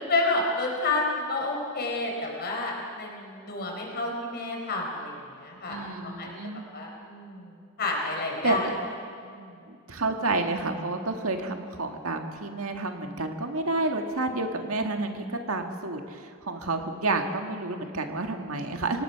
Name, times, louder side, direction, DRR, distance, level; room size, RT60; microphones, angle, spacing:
voice 1, 0.1-6.3 6.7-8.7 9.2-9.7, left 2 dB, 50° left, 0 dB, 4.5 m, -30 dB
voice 2, 5.7-6.7 8.4-8.7 9.7-19.0, right 2 dB, 80° right, 5 dB, 1.8 m, -30 dB
26.0 x 18.5 x 5.8 m, 2.3 s
head